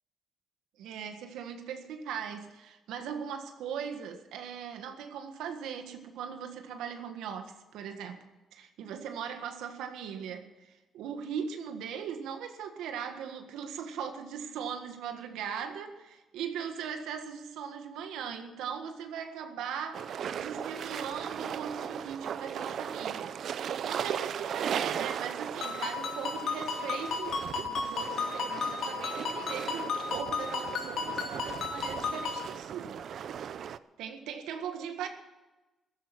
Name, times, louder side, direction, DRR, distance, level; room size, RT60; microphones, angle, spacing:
voice 1, 0.8-8.2 8.5-20.1 20.3-33.0 34.0-35.1, right 7 dB, 90° right, 6 dB, 1.7 m, -39 dB
sound 1, 19.9-33.8, right 8 dB, 65° right, 0.6 m, -37 dB
Ringtone, 25.6-32.5, left 5 dB, 70° left, 3.2 m, -34 dB
15.0 x 13.0 x 6.1 m, 1.1 s
cardioid pair, 90°, 0 cm